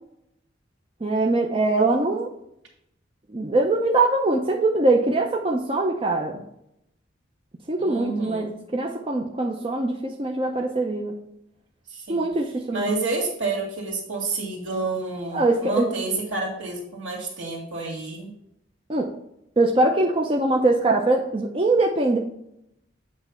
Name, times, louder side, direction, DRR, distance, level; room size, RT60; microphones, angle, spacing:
voice 1, 1.0-2.3 3.3-6.4 7.7-11.1 12.1-12.9 15.3-15.9 18.9-19.1 19.6-22.2, right 2 dB, 30° right, 0 dB, 0.6 m, -22 dB
voice 2, 7.8-8.5 11.9-12.2 12.7-18.3, right 3 dB, 70° right, -1 dB, 2.5 m, -29 dB
8.2 x 3.3 x 5.3 m, 0.78 s
head